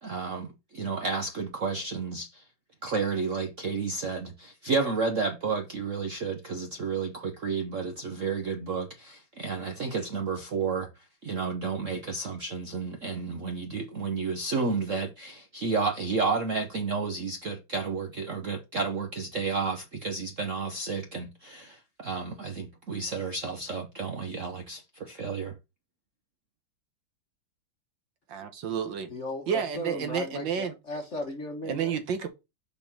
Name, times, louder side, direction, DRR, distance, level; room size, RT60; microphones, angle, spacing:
voice 1, 0.0-2.4 2.8-25.6, right 4 dB, 50° right, 1.0 m, -31 dB
voice 2, 28.3-29.1 29.5-30.8 31.7-32.3, right 7 dB, 65° right, 1.8 m, -30 dB
voice 3, 29.1-32.0, left 1 dB, 40° left, 1.3 m, -36 dB
5.7 x 4.4 x 5.9 m
omnidirectional pair, 2.2 m